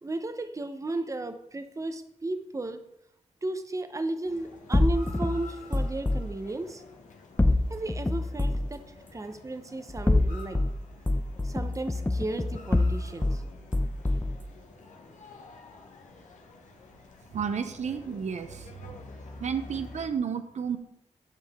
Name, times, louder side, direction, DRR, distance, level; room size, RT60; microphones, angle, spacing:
voice 1, 0.0-2.8 3.4-6.8 7.7-8.8 9.1-10.6 11.4-13.4, right 2 dB, 25° right, 8 dB, 0.8 m, -34 dB
sound 1, 4.2-20.1, left 3 dB, 85° left, 1.3 m, -49 dB
sound 2, 4.7-6.2 7.4-8.7 9.9-10.7 11.1-13.4 13.7-14.4, left 2 dB, 15° left, 0.6 m, -25 dB
voice 2, 17.3-19.0 19.4-20.8, right 7 dB, 65° right, 9 dB, 0.6 m, -32 dB
9.8 x 5.6 x 3.5 m, 0.79 s
cardioid pair, 70°, 13 cm